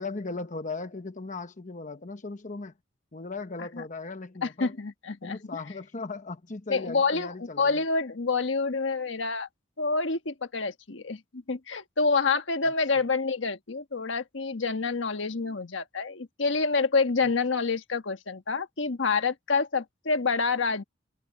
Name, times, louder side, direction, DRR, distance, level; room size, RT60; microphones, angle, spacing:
voice 1, 0.0-2.7 3.1-4.7 5.2-7.8, left 3 dB, 45° left, 1.0 m, -37 dB
voice 2, 4.4-5.4 6.7-9.5 9.8-20.8, left 4 dB, 85° left, 1.4 m, -27 dB
head